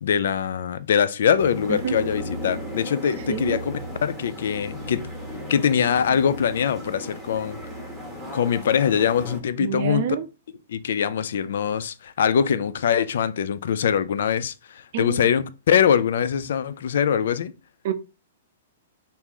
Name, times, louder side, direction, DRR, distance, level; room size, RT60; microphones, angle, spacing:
voice 1, 0.0-5.1 5.5-7.6 8.3-10.2 10.7-17.5, left 8 dB, 65° left, 0.3 m, -23 dB
sound 1, 1.4-9.4, equal, 5° left, 1.2 m, -36 dB
voice 2, 3.3-3.6 9.6-10.3 14.9-15.2 17.8-17.9, right 9 dB, 50° right, 0.4 m, -27 dB
2.8 x 2.6 x 3.6 m
hypercardioid pair, 125°, 0 cm